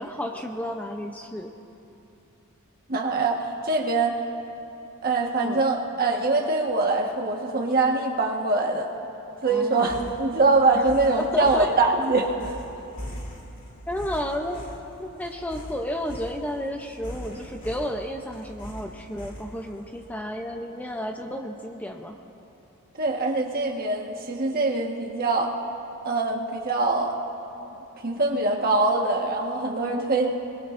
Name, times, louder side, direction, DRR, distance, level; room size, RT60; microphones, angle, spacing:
voice 1, 0.0-1.5 5.4-5.7 9.4-10.0 10.7-10.8 11.2-11.7 13.9-14.6 15.0-22.1, equal, 5° left, 3 dB, 0.6 m, -32 dB
voice 2, 2.9-4.2 5.0-8.9 9.4-12.3 23.0-25.5 26.0-27.2 28.0-30.3, right 3 dB, 40° right, 1 dB, 1.4 m, -23 dB
sound 1, 9.8-19.8, equal, 40° left, 2.2 m, -40 dB
26.0 x 21.0 x 2.6 m, 3.0 s
head